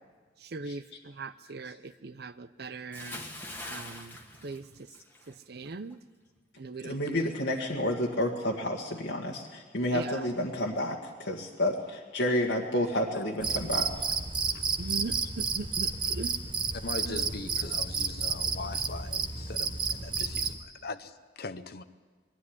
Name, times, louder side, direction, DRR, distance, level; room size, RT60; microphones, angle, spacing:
voice 1, 0.4-3.3 3.7-4.9 5.3-6.0 6.6-7.3 9.9-10.2 14.8-16.4 17.0-17.3 17.6-17.7, right 3 dB, 60° right, 14 dB, 0.7 m, -40 dB
Bathtub (filling or washing) / Splash splatter, 2.9-5.3 5.7-5.9, left 1 dB, 10° left, 1.6 m, -43 dB
voice 2, 6.8-13.9, left 1 dB, 80° left, -3 dB, 1.8 m, -30 dB
Cricket, 13.4-20.6, right 5 dB, 25° right, 0.9 m, -31 dB
voice 3, 16.8-21.8, left 3 dB, 55° left, 11 dB, 0.8 m, -41 dB
21.5 x 12.5 x 9.7 m, 1.4 s
head